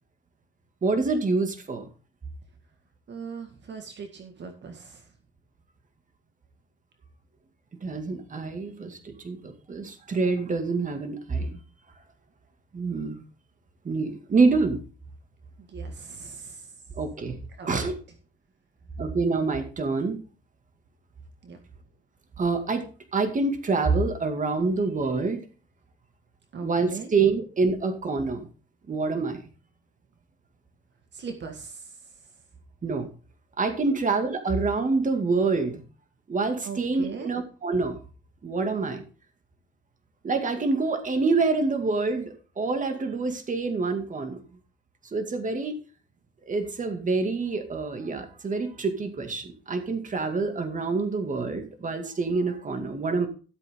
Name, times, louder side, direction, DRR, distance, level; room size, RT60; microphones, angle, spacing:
voice 1, 0.8-1.9 7.8-11.6 12.7-13.2 13.8-14.8 17.0-17.4 17.7-18.0 19.0-20.2 22.4-22.8 23.1-25.4 26.6-28.5 28.9-29.4 32.8-33.1 33.6-35.8 36.3-38.0 38.4-39.0 40.2-44.4 45.1-45.8 46.5-53.3, right 4 dB, 40° right, 6 dB, 2.3 m, -26 dB
voice 2, 3.1-5.1 15.6-16.7 17.6-17.9 21.4-21.6 26.5-27.1 31.1-31.9 33.9-34.0 36.6-37.3, right 5 dB, 60° right, 5 dB, 1.8 m, -39 dB
13.0 x 8.2 x 3.8 m, 0.37 s
cardioid pair, 100°, 21 cm